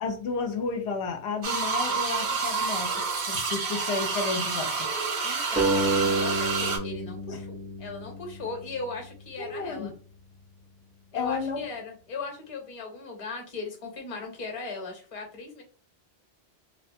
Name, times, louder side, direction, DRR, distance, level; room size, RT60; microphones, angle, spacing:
voice 1, 0.0-2.9 3.3-4.7 7.3-7.4 9.4-9.9 11.1-11.6, left 4 dB, 85° left, 4 dB, 0.9 m, -31 dB
sound 1, 1.4-6.8, right 4 dB, 80° right, 1.0 m, -29 dB
voice 2, 5.2-9.9 11.1-15.6, left 3 dB, 35° left, 2 dB, 0.8 m, -38 dB
sound 2, 5.6-8.8, right 2 dB, 15° right, 0.4 m, -29 dB
2.8 x 2.2 x 2.6 m, 0.40 s
omnidirectional pair, 1.1 m